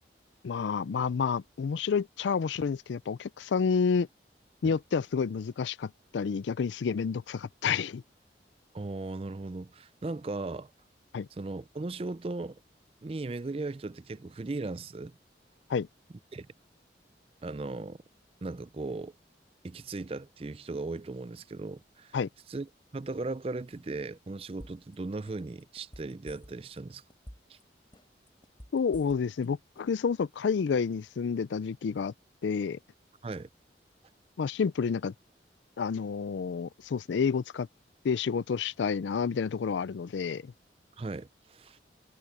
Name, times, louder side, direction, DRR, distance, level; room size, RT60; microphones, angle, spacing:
voice 1, 0.4-4.1 4.6-8.0 11.1-11.3 15.7-15.9 22.1-22.3 28.7-32.1 32.4-32.8 34.4-35.1 35.8-37.7 38.0-40.5, left 6 dB, 90° left, 0.4 m, -29 dB
voice 2, 8.7-10.7 11.3-12.6 13.0-15.2 16.3-16.5 17.4-18.0 18.4-19.1 19.6-22.2 22.5-27.0 27.5-27.6 33.2-33.5 41.0-41.8, right 3 dB, 30° right, 0.4 m, -37 dB
sound 1, 24.6-25.0 25.3-26.8 27.1-27.6 27.9-29.5 29.8-29.9, equal, 30° left, 3.9 m, -49 dB
head